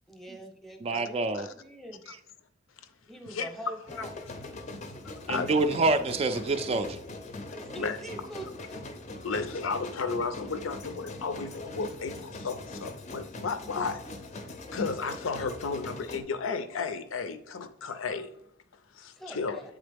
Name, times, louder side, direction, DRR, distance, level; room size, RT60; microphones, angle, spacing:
voice 1, 0.1-1.2 1.5-2.0 3.1-4.3 7.5-8.8 19.2-19.6, right 1 dB, ahead, 4 dB, 0.7 m, -44 dB
voice 2, 0.8-1.5 5.3-7.0, right 3 dB, 30° right, 9 dB, 0.3 m, -26 dB
sound 1, 3.9-16.2, left 2 dB, 35° left, 0.5 m, -42 dB
voice 3, 9.2-12.1 12.4-14.0 14.7-18.3 19.3-19.6, left 4 dB, 85° left, 11 dB, 0.5 m, -33 dB
7.9 x 3.7 x 3.4 m, 0.70 s
head